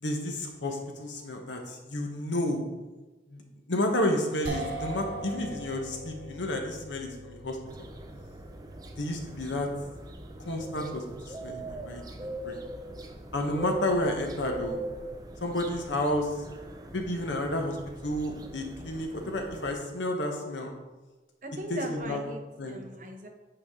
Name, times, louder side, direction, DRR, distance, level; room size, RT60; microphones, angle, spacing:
voice 1, 0.0-2.6 3.3-3.4 3.7-7.9 9.0-9.7 10.4-12.6 13.3-14.8 15.4-16.4 16.9-17.8 18.0-20.7 21.7-22.2 22.6-22.8, left 1 dB, 85° left, 3 dB, 1.1 m, -31 dB
sound 1, 4.4-16.8, right 1 dB, 65° right, 1.6 m, -44 dB
sound 2, 7.7-19.7, right 1 dB, 20° right, 0.5 m, -41 dB
voice 2, 21.4-23.3, right 1 dB, 45° right, 3 dB, 1.0 m, -39 dB
8.9 x 4.9 x 3.7 m, 1.2 s
head